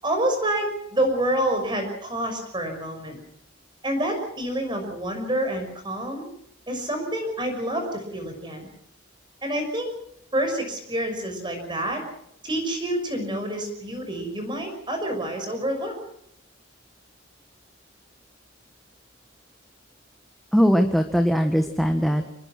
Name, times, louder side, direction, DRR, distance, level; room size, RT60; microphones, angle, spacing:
voice 1, 0.0-3.2 3.8-6.2 6.7-8.7 9.4-9.9 10.3-12.0 12.4-15.9, right 1 dB, 25° right, 5 dB, 6.0 m, -27 dB
voice 2, 20.5-22.3, equal, ahead, 4 dB, 1.5 m, -20 dB
26.5 x 20.5 x 6.1 m, 0.72 s
head